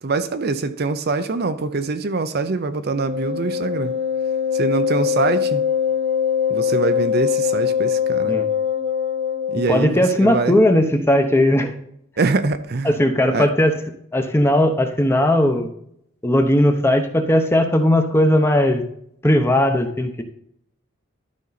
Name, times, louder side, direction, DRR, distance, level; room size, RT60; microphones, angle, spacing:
voice 1, 0.0-3.9 4.5-5.6 6.5-8.4 9.5-10.6 12.2-13.0 13.3-13.5, right 4 dB, 50° right, 0.6 m, -23 dB
Wind instrument woodwind instrument, 2.9-9.9, left 8 dB, 30° right, 1.1 m, -22 dB
voice 2, 9.7-11.7 12.8-13.8 14.1-15.7 16.2-18.8 19.2-20.1, left 1 dB, 10° left, 0.9 m, -17 dB
12.0 x 5.2 x 4.1 m
head